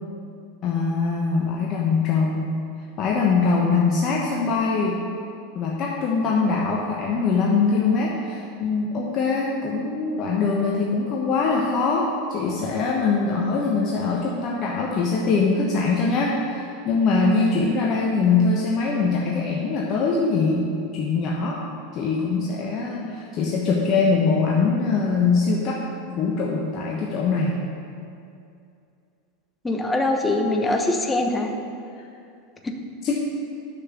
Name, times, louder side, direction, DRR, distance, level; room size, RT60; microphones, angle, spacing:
voice 1, 0.6-2.5 3.0-5.0 5.5-21.6 21.9-27.6 33.0-33.2, left 4 dB, 45° left, -2 dB, 1.1 m, -22 dB
voice 2, 29.6-31.5 32.6-32.7, left 2 dB, 15° left, 3 dB, 1.2 m, -23 dB
6.9 x 5.9 x 7.1 m, 2.5 s
hypercardioid pair, 90°, 0 cm